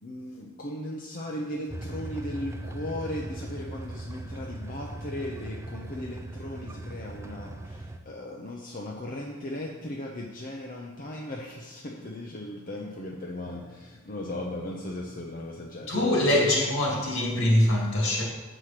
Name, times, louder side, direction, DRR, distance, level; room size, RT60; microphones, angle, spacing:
voice 1, 0.0-15.9 16.4-16.6, left 1 dB, 40° left, -1 dB, 0.7 m, -37 dB
sound 1, 1.7-8.0, right 1 dB, 15° right, 0.4 m, -39 dB
voice 2, 15.9-18.2, left 1 dB, 70° left, -2 dB, 2.3 m, -23 dB
7.4 x 5.0 x 5.8 m, 1.2 s
head